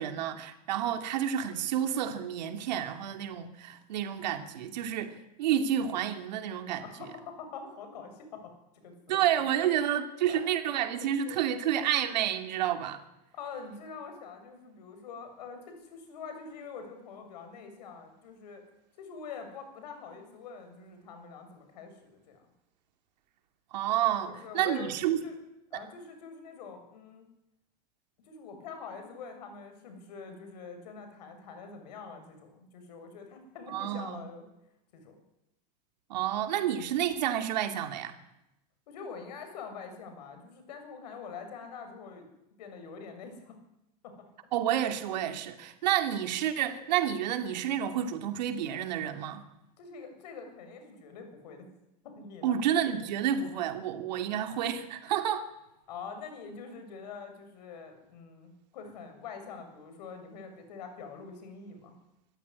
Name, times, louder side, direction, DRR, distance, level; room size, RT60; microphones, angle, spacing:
voice 1, 0.0-6.8 9.1-13.0 23.7-25.2 25.7-25.8 33.7-34.2 36.1-38.1 44.5-49.4 52.4-55.5, right 10 dB, 85° right, 6 dB, 2.9 m, -30 dB
voice 2, 6.8-9.2 10.3-10.4 11.3-11.4 13.3-18.6 19.0-22.4 24.2-24.9 25.2-25.4 25.7-27.3 28.3-34.5 34.9-35.2 38.9-42.3 42.6-43.6 44.0-44.2 49.8-51.7 52.0-52.6 55.9-61.9, left 5 dB, 75° left, 6 dB, 7.2 m, -45 dB
25.5 x 14.5 x 9.9 m, 0.90 s
supercardioid pair, 175°, 21 cm